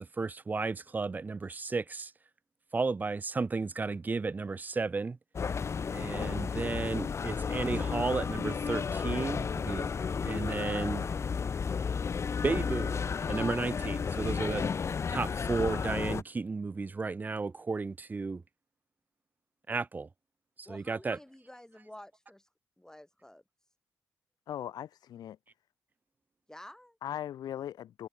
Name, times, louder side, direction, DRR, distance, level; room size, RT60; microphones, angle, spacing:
voice 1, 0.0-2.1 2.7-5.2 5.9-9.9 10.2-11.1 12.4-14.7 15.1-18.4 19.7-20.1 20.6-21.2, right 4 dB, 25° right, 0.3 m, -33 dB
sound 1, 5.3-16.2, left 6 dB, 45° left, 0.5 m, -33 dB
voice 2, 20.6-22.5 22.8-23.4 26.5-27.0, left 1 dB, 10° left, 3.0 m, -51 dB
voice 3, 24.5-25.4 27.0-28.1, left 11 dB, 80° left, 1.2 m, -39 dB
cardioid pair, 60°, 7 cm